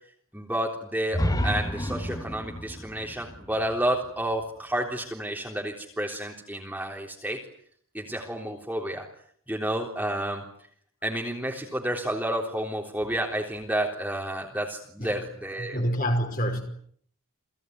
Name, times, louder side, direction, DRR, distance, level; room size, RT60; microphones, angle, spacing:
voice 1, 0.3-7.4 7.9-9.1 9.5-10.4 11.0-15.8, right 1 dB, 5° right, 3.7 m, -30 dB
sound 1, 1.1-4.9, equal, 15° left, 2.2 m, -31 dB
voice 2, 15.6-16.6, equal, 40° left, 5.4 m, -27 dB
30.0 x 20.5 x 9.6 m
head